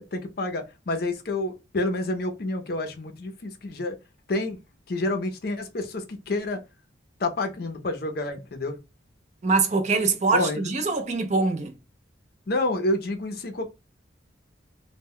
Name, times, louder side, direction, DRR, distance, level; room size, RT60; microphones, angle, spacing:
voice 1, 0.0-3.9 4.3-4.6 4.9-6.6 7.2-8.8 10.3-10.6 12.5-13.7, left 2 dB, 50° left, 0.5 m, -28 dB
voice 2, 9.4-11.7, right 4 dB, 35° right, 0.4 m, -23 dB
2.1 x 2.1 x 3.6 m
head